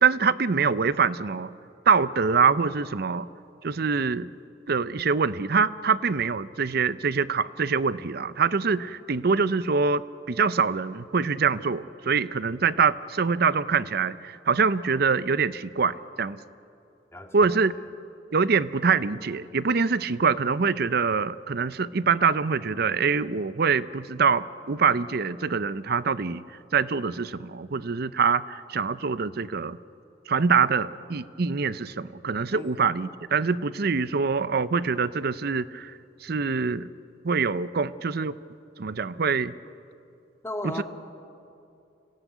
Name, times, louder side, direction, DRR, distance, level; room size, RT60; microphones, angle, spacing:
voice 1, 0.0-1.5 1.9-3.3 3.6-4.3 4.7-16.4 17.3-17.7 18.3-26.4 26.7-29.8 30.3-35.9 36.2-36.9 37.2-38.4 38.8-39.5 40.6-40.8, right 5 dB, 60° right, 16 dB, 0.6 m, -24 dB
voice 2, 17.1-17.6 32.5-32.8 40.4-40.8, left 1 dB, 15° left, 3 dB, 2.0 m, -35 dB
26.0 x 17.0 x 9.4 m, 2.6 s
head